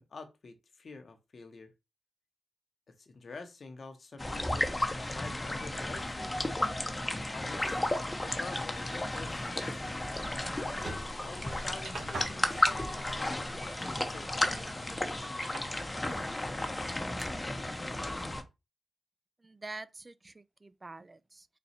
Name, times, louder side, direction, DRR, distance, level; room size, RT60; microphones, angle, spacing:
voice 1, 0.0-1.7 3.0-4.7 5.1-6.3 7.1-7.8 8.3-10.0 11.2-14.6, left 4 dB, 55° left, 0.8 m, -47 dB
sound 1, 4.2-18.4, left 1 dB, 20° left, 0.7 m, -33 dB
sound 2, 10.7-11.1 12.0-12.4 13.0-13.1 14.0-14.1 16.1-16.2 17.2-17.3, right 3 dB, 90° right, 1.1 m, -42 dB
sound 3, 11.4-17.2, right 2 dB, 65° right, 1.7 m, -50 dB
voice 2, 19.4-21.5, right 2 dB, 30° right, 0.3 m, -46 dB
4.1 x 2.3 x 4.2 m
cardioid pair, 65°, 0 cm